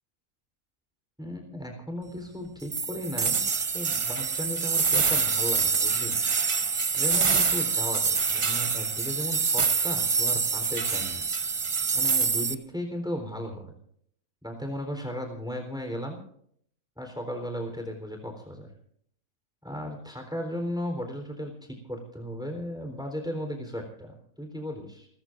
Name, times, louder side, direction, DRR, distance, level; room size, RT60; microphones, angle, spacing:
voice 1, 1.2-3.4 3.7-6.2 6.9-11.2 11.9-13.7 14.4-16.2 17.0-18.7 19.6-21.5 21.9-25.1, equal, 5° right, 3 dB, 3.8 m, -35 dB
sound 1, 2.7-12.5, right 5 dB, 30° right, 0.6 m, -26 dB
30.0 x 14.0 x 2.6 m, 0.64 s
omnidirectional pair, 1.4 m